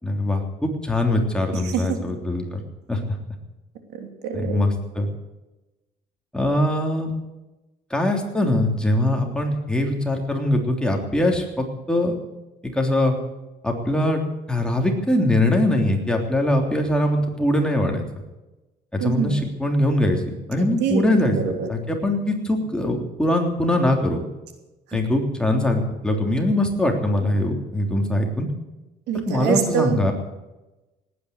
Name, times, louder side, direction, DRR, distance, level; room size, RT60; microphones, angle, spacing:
voice 1, 0.0-2.6 2.9-3.0 4.3-5.1 6.3-7.1 7.9-12.1 12.7-13.1 13.6-14.2 14.5-18.0 18.9-21.3 21.7-24.2 24.9-28.5 29.3-30.1, left 1 dB, 5° left, 1 dB, 3.3 m, -22 dB
voice 2, 1.5-2.0 4.0-4.6 19.0-19.4 20.8-21.7 29.1-30.0, right 7 dB, 90° right, 4 dB, 3.1 m, -25 dB
18.5 x 9.6 x 8.1 m, 1.0 s
cardioid pair, 110°, 17 cm